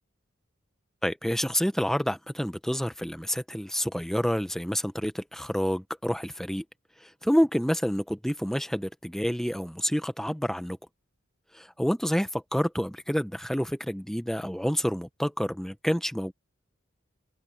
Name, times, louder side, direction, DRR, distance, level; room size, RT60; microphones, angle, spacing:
voice 1, 1.0-6.6 7.0-10.8 11.5-16.3, equal, ahead, 0.8 m, -28 dB
head